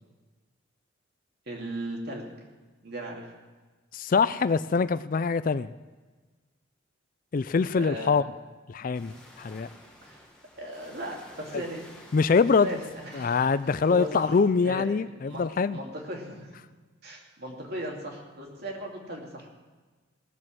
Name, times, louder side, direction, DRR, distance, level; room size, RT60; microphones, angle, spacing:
voice 1, 1.5-2.2 2.8-3.3 7.7-8.3 10.0-10.2 10.6-11.9 12.5-14.4 14.6-14.9 15.3-16.6 17.0-19.5, right 1 dB, 50° right, 0 dB, 2.7 m, -37 dB
voice 2, 3.9-5.7 7.3-8.2 8.7-9.7 12.1-12.7 13.1-15.8, left 5 dB, 40° left, 15 dB, 0.4 m, -24 dB
sound 1, 8.9-14.4, left 1 dB, 5° left, 1.7 m, -52 dB
18.0 x 7.7 x 7.5 m, 1.3 s
head